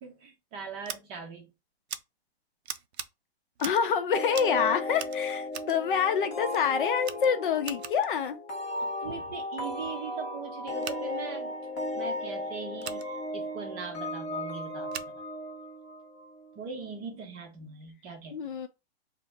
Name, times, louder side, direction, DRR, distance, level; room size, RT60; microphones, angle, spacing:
voice 1, 0.0-1.5 8.8-11.5 12.0-15.0 16.6-18.4, right 5 dB, 20° right, 0.6 m, -40 dB
Scissors, 0.8-1.0 1.9-2.0 2.6-3.1 3.6-3.9 4.3-4.6 4.9-5.8 6.5-6.6 7.0-8.1 10.8-11.0 12.8-13.0 14.9-15.1, right 8 dB, 90° right, 0.5 m, -40 dB
voice 2, 3.6-8.4 18.3-18.7, left 7 dB, 55° left, 0.6 m, -27 dB
sound 1, 4.1-16.5, left 2 dB, 20° left, 0.9 m, -35 dB
2.6 x 2.1 x 3.2 m
hypercardioid pair, 145°, 31 cm